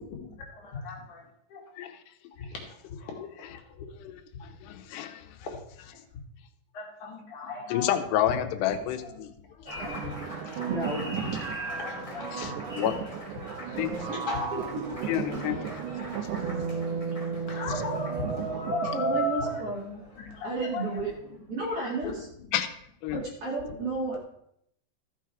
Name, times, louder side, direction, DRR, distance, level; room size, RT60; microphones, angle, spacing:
voice 1, 0.1-1.2 1.5-1.6 2.4-2.6 3.0-3.9 6.7-7.9 9.0-9.2 9.6-10.1 10.4-10.9 11.7-12.5 14.1-14.5 15.3-15.6 17.5-19.6 20.2-21.1 21.7-22.2, left 1 dB, 55° left, -1 dB, 2.9 m, -35 dB
voice 2, 4.6-5.2 7.7-9.3 12.3-12.9 13.8-13.9 15.1-15.6 22.5-22.7 23.0-23.2, left 11 dB, 90° left, 8 dB, 3.0 m, -29 dB
Applause, 9.7-21.4, left 1 dB, 10° left, 2.3 m, -43 dB
sound 1, 9.8-19.3, right 7 dB, 85° right, 1.8 m, -34 dB
voice 3, 10.6-11.0 14.1-14.2 18.9-20.0 20.4-21.1 21.5-22.3 23.1-24.2, right 2 dB, 40° right, -3 dB, 2.6 m, -32 dB
14.0 x 6.3 x 4.7 m, 0.72 s
omnidirectional pair, 4.7 m